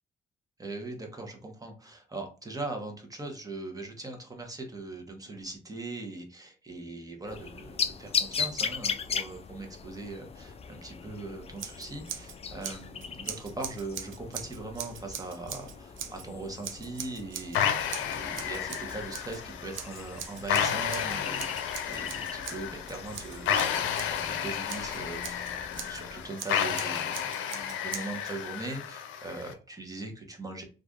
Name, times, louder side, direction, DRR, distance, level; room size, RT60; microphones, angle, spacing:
voice 1, 0.6-30.6, right 2 dB, 20° right, 2 dB, 1.0 m, -40 dB
sound 1, 7.3-26.3, left 6 dB, 30° left, 0.3 m, -39 dB
Scissors, 11.6-12.4 12.6-16.3 16.6-17.6 17.9-19.4 19.7-24.2 24.7-26.0 26.4-28.3, right 9 dB, 75° right, 0.6 m, -41 dB
sound 2, 17.5-29.5, left 8 dB, 80° left, 0.5 m, -32 dB
3.2 x 2.5 x 2.4 m, 0.36 s
cardioid pair, 90°, 20 cm